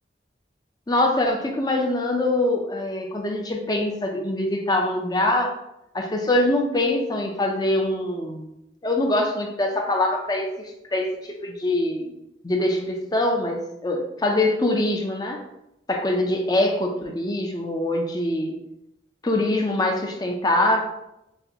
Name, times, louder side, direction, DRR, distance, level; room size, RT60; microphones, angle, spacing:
voice 1, 0.9-5.5 5.9-8.5 8.8-12.1 12.4-15.4 15.9-18.5 19.2-20.8, left 1 dB, 20° left, 1 dB, 0.5 m, -23 dB
6.3 x 2.2 x 2.8 m, 0.85 s
head